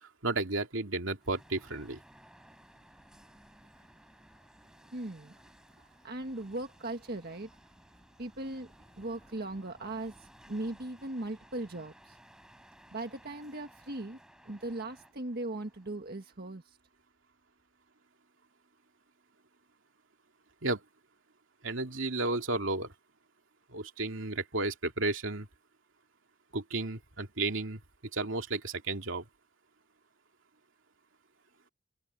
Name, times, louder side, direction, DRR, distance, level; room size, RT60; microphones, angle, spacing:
voice 1, 0.0-2.0 20.6-20.8 21.6-22.9 23.7-25.5 26.5-27.8 28.1-29.2, right 2 dB, 75° right, 2.6 m, -33 dB
sound 1, 1.2-16.3, equal, 5° right, 8.0 m, -59 dB
voice 2, 4.9-5.3 6.0-7.5 8.2-8.7 9.0-10.1 10.5-12.2 12.9-14.2 14.4-16.6, right 2 dB, 50° right, 1.6 m, -38 dB
open air
head